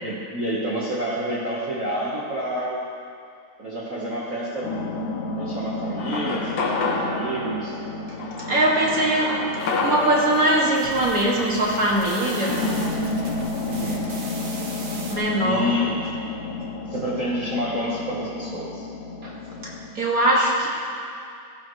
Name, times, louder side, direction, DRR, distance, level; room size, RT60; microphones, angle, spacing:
voice 1, 0.0-2.9 3.6-4.8 5.4-7.8 13.6-14.1 15.4-16.0 16.9-18.9, equal, 85° right, -5 dB, 0.7 m, -28 dB
sound 1, 4.6-19.9, left 2 dB, 85° left, 2.5 m, -32 dB
sound 2, 6.0-12.9, left 3 dB, 55° left, 1.7 m, -30 dB
voice 2, 8.4-9.4 9.8-12.7 15.1-15.7 19.2-19.3 19.6-20.7, right 1 dB, 35° right, -4 dB, 2.0 m, -21 dB
sound 3, 9.6-15.2, right 3 dB, 50° right, 1.1 m, -40 dB
15.5 x 15.0 x 3.1 m, 2.4 s
omnidirectional pair, 3.5 m